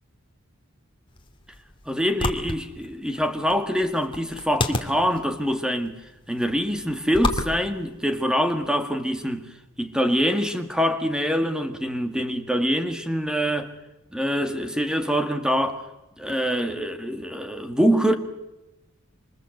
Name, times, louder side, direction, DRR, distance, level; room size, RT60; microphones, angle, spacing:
sound 1, 1.1-8.7, left 2 dB, 25° left, 2.2 m, -33 dB
voice 1, 1.9-6.0 6.3-9.5 9.8-13.7 14.1-15.8 16.2-18.2, equal, 5° right, 1.9 m, -24 dB
26.0 x 26.0 x 7.9 m
head